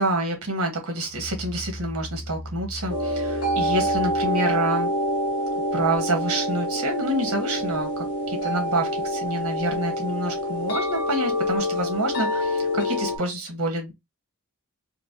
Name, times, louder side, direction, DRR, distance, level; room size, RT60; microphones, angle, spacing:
voice 1, 0.0-4.9 5.5-13.9, right 1 dB, 80° right, 1.4 m, -27 dB
Musical instrument, 0.9-4.4, equal, 25° right, 1.4 m, -38 dB
sound 1, 2.9-13.2, equal, 80° left, 1.2 m, -26 dB
4.5 x 2.2 x 2.6 m
head